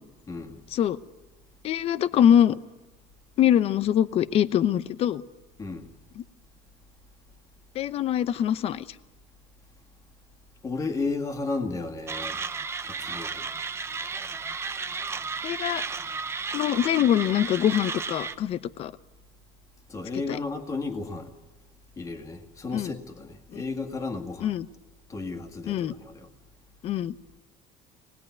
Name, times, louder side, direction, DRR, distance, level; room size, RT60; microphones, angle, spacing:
voice 1, 0.3-0.6 5.6-5.9 10.6-12.4 12.8-13.5 19.9-21.3 22.0-24.5 25.1-26.3, left 3 dB, 20° left, 2.1 m, -33 dB
voice 2, 1.6-2.6 3.4-5.2 6.2-6.3 7.7-8.8 15.4-15.8 16.5-18.9 22.7-22.9 23.5-23.6 24.4-24.7 25.7-25.9 26.8-27.2, left 10 dB, 45° left, 0.8 m, -23 dB
Mechanisms, 12.1-18.3, right 5 dB, 20° right, 0.7 m, -33 dB
25.0 x 20.0 x 9.4 m
cardioid pair, 155°, 14 cm